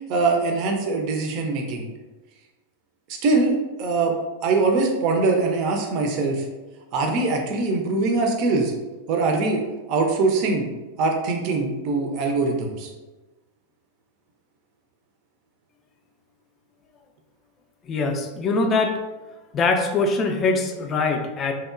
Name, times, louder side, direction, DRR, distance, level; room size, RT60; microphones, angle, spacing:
voice 1, 0.1-1.9 3.2-4.1 4.4-6.4 6.9-8.7 9.1-9.6 9.9-10.7 11.0-12.9, right 3 dB, 40° right, 2 dB, 0.4 m, -22 dB
voice 2, 17.9-19.0 19.5-21.5, left 3 dB, 25° left, 5 dB, 0.3 m, -22 dB
2.8 x 2.0 x 2.4 m, 1.2 s
figure-of-eight pair, 90°, 0 cm